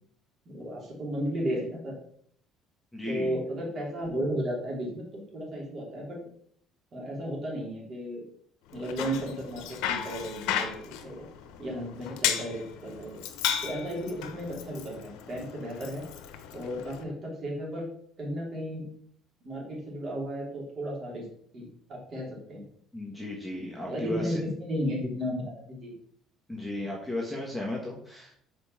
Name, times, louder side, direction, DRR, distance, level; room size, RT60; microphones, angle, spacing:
voice 1, 0.4-1.9 3.1-6.2 6.9-8.2 8.7-11.3 11.6-13.2 13.6-16.0 16.5-17.9 18.2-18.9 19.4-21.3 21.5-22.6 23.8-25.9, equal, 40° right, -3 dB, 3.2 m, -34 dB
voice 2, 2.9-3.4 22.9-24.4 26.5-28.4, left 1 dB, ahead, -3 dB, 1.3 m, -35 dB
Bicycle, 8.7-17.0, left 9 dB, 80° left, 0.8 m, -35 dB
5.3 x 4.9 x 5.8 m, 0.64 s
cardioid pair, 130°, 0 cm